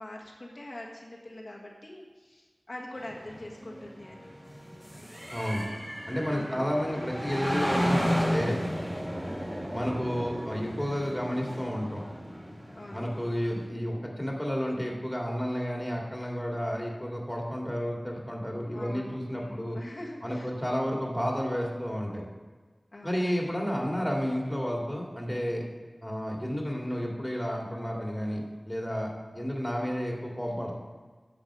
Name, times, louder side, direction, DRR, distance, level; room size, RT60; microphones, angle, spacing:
voice 1, 0.0-4.3 6.3-6.7 9.2-9.6 12.7-13.1 18.7-21.1 22.9-23.5, left 1 dB, 55° left, -2 dB, 1.5 m, -44 dB
sound 1, 3.0-13.6, equal, 15° right, 3.2 m, -33 dB
voice 2, 5.3-5.6 6.1-8.6 9.7-12.0 12.9-19.8 20.2-22.3 23.0-25.6 26.0-30.7, equal, 5° left, -1 dB, 2.6 m, -31 dB
11.0 x 7.7 x 5.0 m, 1.4 s
wide cardioid pair, 45°, 0 cm